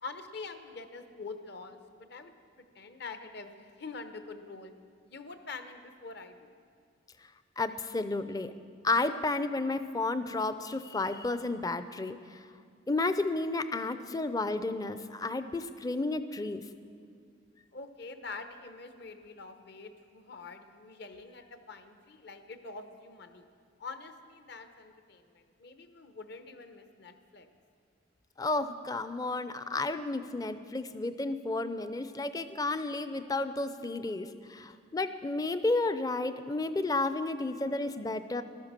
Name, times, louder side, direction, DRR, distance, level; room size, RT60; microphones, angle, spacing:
voice 1, 0.0-2.3 2.7-4.7 5.0-6.5 17.7-23.5 23.8-27.5, left 4 dB, 55° left, 9 dB, 1.0 m, -45 dB
voice 2, 7.6-8.5 8.8-12.4 12.9-16.6 28.4-38.4, left 2 dB, 20° left, 12 dB, 0.5 m, -32 dB
15.0 x 12.5 x 7.4 m, 2.2 s
head